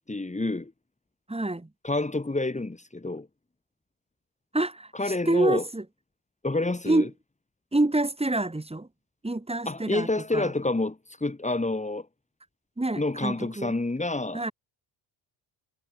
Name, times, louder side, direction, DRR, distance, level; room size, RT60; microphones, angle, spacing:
voice 1, 0.1-0.7 1.8-3.3 4.9-5.6 6.4-7.1 9.6-12.1 13.0-14.4, left 2 dB, 15° left, 6.5 m, -28 dB
voice 2, 1.3-1.7 4.5-4.9 5.3-5.8 6.9-7.1 7.7-8.9 9.2-10.1 10.3-10.5 12.8-13.7 14.3-14.5, right 2 dB, 10° right, 7.9 m, -26 dB
cardioid pair, 100°, 49 cm